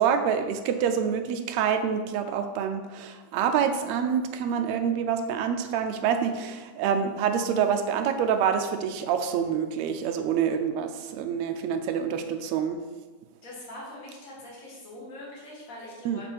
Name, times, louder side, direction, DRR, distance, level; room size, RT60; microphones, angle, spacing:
voice 1, 0.0-12.8 16.0-16.2, right 7 dB, 80° right, 7 dB, 1.6 m, -26 dB
voice 2, 13.4-16.3, left 1 dB, 30° left, -5 dB, 2.0 m, -43 dB
7.0 x 6.0 x 4.5 m, 1.3 s
omnidirectional pair, 3.6 m